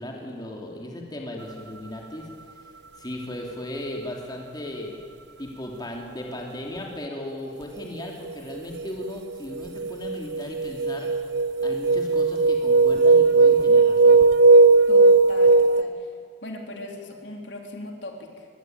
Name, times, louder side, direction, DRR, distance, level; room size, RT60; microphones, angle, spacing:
voice 1, 0.0-2.3 2.9-5.0 5.4-11.1 11.6-14.2, left 1 dB, 20° left, 0 dB, 3.2 m, -36 dB
sound 1, 8.8-9.1 9.5-15.8, right 3 dB, 60° right, 0.6 m, -17 dB
voice 2, 14.9-16.1 16.4-18.5, left 1 dB, 75° left, 2 dB, 3.8 m, -39 dB
24.0 x 20.5 x 9.2 m, 2.3 s
head